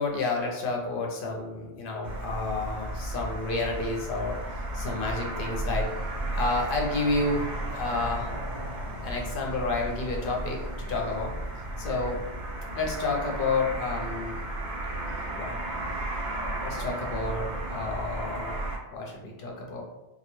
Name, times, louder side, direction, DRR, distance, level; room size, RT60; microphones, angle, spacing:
voice 1, 0.0-5.9 6.3-8.4 9.0-10.6 10.9-11.3 11.8-12.2 12.7-14.4 15.3-15.6 16.6-19.8, left 3 dB, 60° left, -1 dB, 0.7 m, -30 dB
sound 1, 2.0-18.8, right 1 dB, 75° right, 0.9 m, -34 dB
2.1 x 2.1 x 3.0 m, 1.0 s
omnidirectional pair, 1.1 m